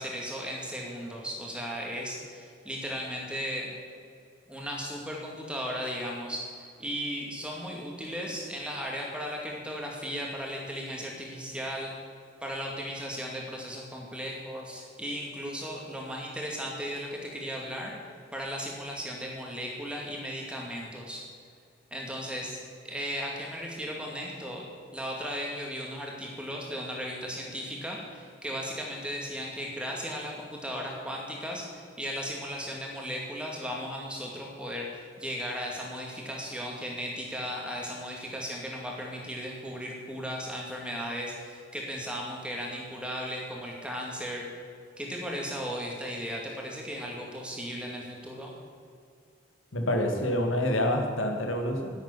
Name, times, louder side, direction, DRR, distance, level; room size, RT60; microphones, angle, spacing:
voice 1, 0.0-3.7 4.5-6.5 6.8-11.9 12.4-17.9 18.3-21.2 21.9-22.6 22.8-24.6 24.9-34.9 35.2-44.5 45.0-48.5, equal, 5° right, -1 dB, 2.3 m, -36 dB
voice 2, 49.7-51.9, left 1 dB, 90° left, 4 dB, 1.9 m, -27 dB
11.0 x 8.1 x 10.0 m, 2.3 s
head